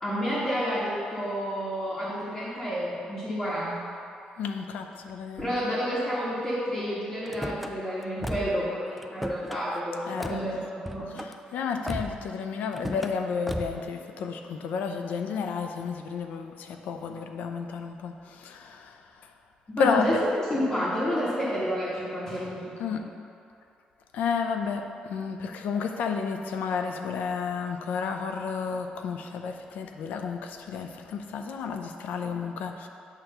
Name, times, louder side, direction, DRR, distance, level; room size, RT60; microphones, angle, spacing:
voice 1, 0.0-3.9 5.4-11.2 19.7-23.0, equal, 20° left, -11 dB, 1.4 m, -30 dB
voice 2, 4.4-5.5 10.1-10.6 11.1-19.3 19.8-20.2 22.8-23.0 24.1-32.9, left 6 dB, 80° left, 5 dB, 0.6 m, -31 dB
Car / Slam, 7.3-7.7 8.2-8.7 9.0-9.6 10.2-10.4 10.8-11.3 11.9-12.3 12.7-13.1 13.5-13.8, equal, ahead, 0.3 m, -35 dB
9.0 x 3.0 x 6.5 m, 2.5 s
cardioid pair, 160°, 3 cm